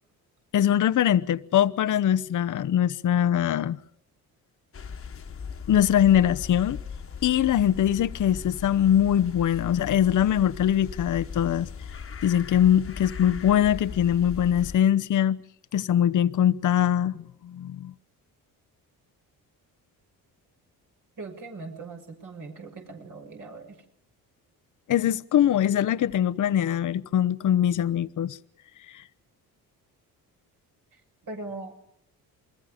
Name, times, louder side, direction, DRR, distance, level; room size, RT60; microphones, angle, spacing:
voice 1, 0.5-3.8 5.7-6.8 7.2-11.7 12.2-15.4 15.7-17.9 24.9-28.4 28.9-29.0, left 10 dB, 55° left, 0.9 m, -22 dB
sound 1, 4.7-14.8, left 6 dB, 35° left, 1.5 m, -38 dB
voice 2, 21.2-23.8 30.9-31.9, right 3 dB, 55° right, 6.5 m, -40 dB
28.5 x 21.5 x 5.1 m
cardioid pair, 90°, 37 cm